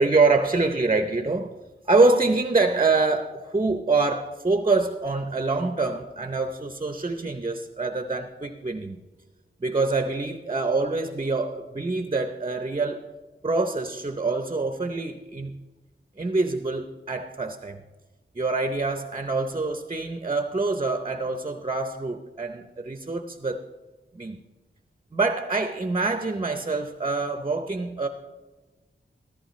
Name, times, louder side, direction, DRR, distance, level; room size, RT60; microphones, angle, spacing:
voice 1, 0.0-1.5 1.9-9.0 9.6-13.1 13.4-15.6 16.2-17.8 18.4-23.6 24.1-24.4 25.1-28.1, right 3 dB, 25° right, 7 dB, 0.6 m, -25 dB
14.0 x 14.0 x 3.1 m, 1.2 s
wide cardioid pair, 90°, 21 cm